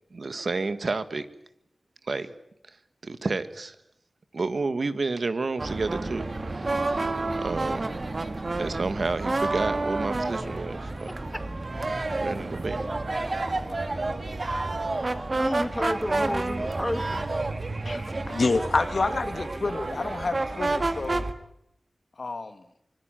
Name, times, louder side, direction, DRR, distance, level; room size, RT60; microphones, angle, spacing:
voice 1, 0.1-1.3 2.0-2.3 3.0-3.7 4.3-7.9 8.5-11.2 12.2-12.8, right 3 dB, 70° right, 1.7 m, -30 dB
sound 1, 5.6-21.3, right 2 dB, 50° right, 2.0 m, -29 dB
voice 2, 11.1-11.4 14.9-17.3, left 1 dB, 10° left, 2.2 m, -32 dB
voice 3, 17.9-21.3 22.2-22.6, left 3 dB, 70° left, 2.1 m, -28 dB
25.0 x 21.5 x 9.1 m
wide cardioid pair, 55°, 0 cm